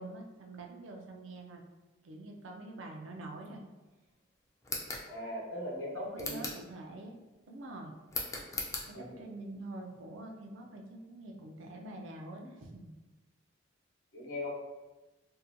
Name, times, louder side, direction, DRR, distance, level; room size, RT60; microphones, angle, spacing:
voice 1, 0.0-1.6 2.0-3.6 5.9-7.2 7.5-7.9 8.9-12.9, right 2 dB, 75° right, 1 dB, 0.4 m, -46 dB
sound 1, 4.6-5.1 6.2-6.7 8.1-8.9, left 3 dB, 15° left, 0.3 m, -38 dB
voice 2, 5.1-6.6 8.8-9.3 14.1-14.5, left 1 dB, 75° left, -5 dB, 0.8 m, -40 dB
2.6 x 2.2 x 2.6 m, 1.2 s
head